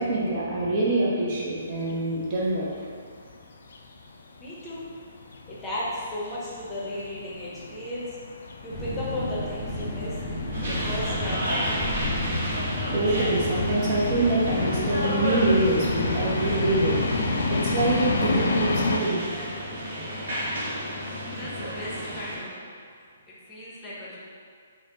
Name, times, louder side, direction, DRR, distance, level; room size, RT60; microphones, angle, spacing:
voice 1, 0.0-2.7 12.9-17.0 17.5-19.3 20.6-20.7 21.6-21.7, right 2 dB, 35° right, -5 dB, 0.6 m, -25 dB
sound 1, 1.6-19.0, left 3 dB, 65° left, 0.3 m, -32 dB
voice 2, 4.4-4.8 5.5-8.1 8.6-10.2 10.7-11.8 21.3-22.5 23.3-24.2, left 1 dB, 15° left, -8 dB, 0.7 m, -35 dB
sound 2, 8.7-18.4, left 1 dB, 10° right, 1.5 m, -32 dB
sound 3, 10.5-22.4, equal, 55° right, 1.0 m, -32 dB
4.0 x 2.1 x 2.9 m, 2.1 s
figure-of-eight pair, 125°, 0 cm